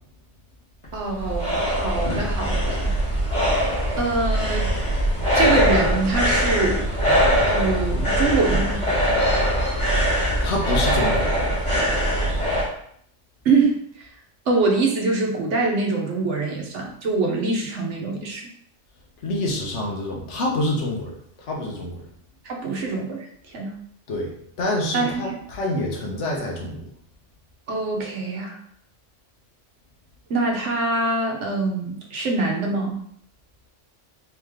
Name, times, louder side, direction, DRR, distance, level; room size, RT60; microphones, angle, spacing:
sound 1, 0.8-12.7, equal, 25° left, 1.5 m, -22 dB
voice 1, 0.9-2.9 4.0-4.7 5.3-6.8 7.5-8.8 13.4-14.1 14.5-18.5 22.4-23.7 24.9-25.4 27.7-28.6 30.3-33.0, right 3 dB, 75° right, 0 dB, 1.2 m, -24 dB
voice 2, 10.4-11.4 19.2-21.1 21.5-22.0 24.1-24.3 24.6-26.8, left 1 dB, 75° left, -1 dB, 1.3 m, -26 dB
3.7 x 3.2 x 3.6 m, 0.67 s
omnidirectional pair, 1.2 m